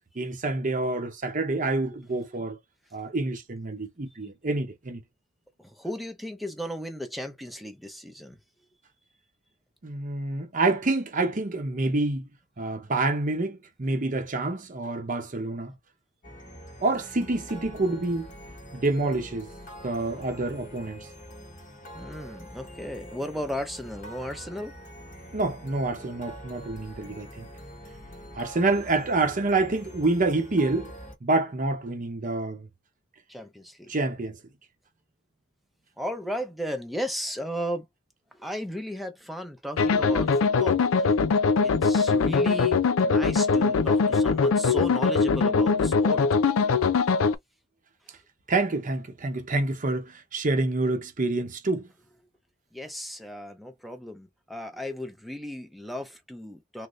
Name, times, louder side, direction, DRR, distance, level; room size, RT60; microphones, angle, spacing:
voice 1, 0.2-2.6 2.9-5.0 9.8-12.3 12.6-15.8 16.8-18.3 18.7-19.5 19.8-21.1 25.3-27.5 28.3-30.9 31.2-32.7 33.9-34.4 48.5-51.9, right 2 dB, 40° right, 0.8 m, -27 dB
voice 2, 5.6-8.4 21.9-24.7 33.3-33.9 36.0-37.9 38.4-41.3 41.6-46.2 52.7-56.9, equal, ahead, 0.7 m, -35 dB
sound 1, 16.2-31.2, equal, 40° left, 1.2 m, -44 dB
sound 2, 39.8-47.3, left 4 dB, 90° left, 0.5 m, -22 dB
3.9 x 2.2 x 3.1 m
head